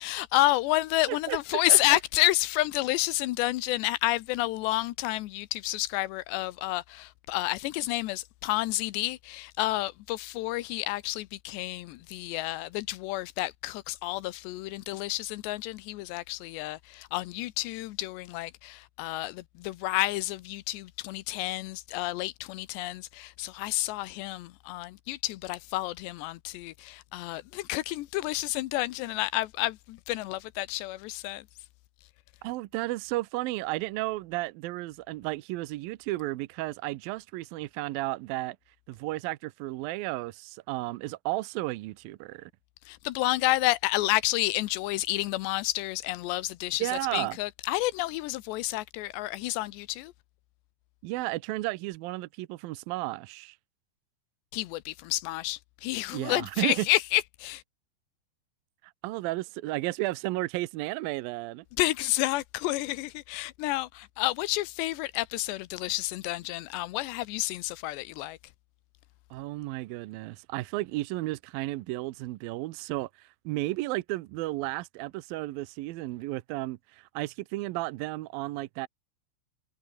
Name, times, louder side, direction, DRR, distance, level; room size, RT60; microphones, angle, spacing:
voice 1, 0.0-31.5 42.8-50.1 54.5-57.6 61.8-68.4, left 18 dB, 85° left, 3.1 m, -30 dB
voice 2, 32.4-38.6 38.9-42.5 46.8-47.4 51.0-53.6 56.1-56.9 58.8-61.7 69.3-78.9, right 19 dB, 80° right, 2.2 m, -33 dB
omnidirectional pair, 4.9 m